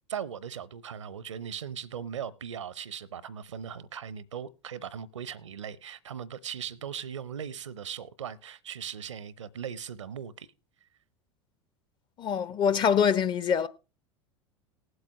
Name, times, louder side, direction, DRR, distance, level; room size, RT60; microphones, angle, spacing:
voice 1, 0.1-10.5, right 8 dB, 70° right, 0.8 m, -39 dB
voice 2, 12.2-13.7, left 7 dB, 30° left, 0.9 m, -24 dB
19.0 x 7.9 x 3.0 m
figure-of-eight pair, 80°, 16 cm